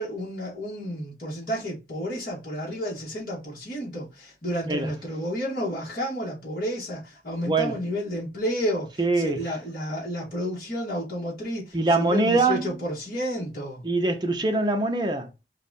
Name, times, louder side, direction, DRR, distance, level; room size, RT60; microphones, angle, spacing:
voice 1, 0.0-8.9 9.2-13.8, equal, 50° left, 1.9 m, -31 dB
voice 2, 9.0-9.4 11.7-12.8 13.8-15.3, right 2 dB, 25° right, 0.7 m, -23 dB
4.5 x 2.5 x 4.1 m
head